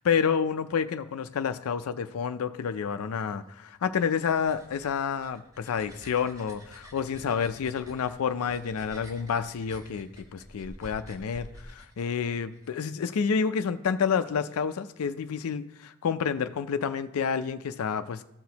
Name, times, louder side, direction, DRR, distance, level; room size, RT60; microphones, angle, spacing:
voice 1, 0.0-18.2, left 6 dB, 70° left, 10 dB, 0.4 m, -29 dB
sound 1, 3.7-12.7, equal, 15° right, 1.0 m, -49 dB
13.5 x 6.0 x 2.8 m, 0.83 s
head